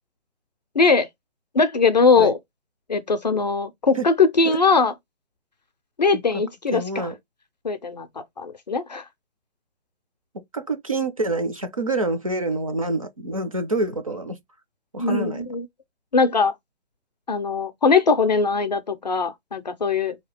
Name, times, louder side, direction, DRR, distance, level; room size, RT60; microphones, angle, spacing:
voice 1, 0.8-1.1 1.5-2.4 2.9-4.9 6.0-7.1 7.6-8.1 8.4-9.0 15.0-15.7 16.1-16.5 17.3-20.2, left 4 dB, 40° left, 0.5 m, -20 dB
voice 2, 6.7-7.1 10.5-14.4 14.9-15.4, right 2 dB, 35° right, 0.5 m, -26 dB
4.4 x 2.8 x 3.2 m
hypercardioid pair, 170°, 33 cm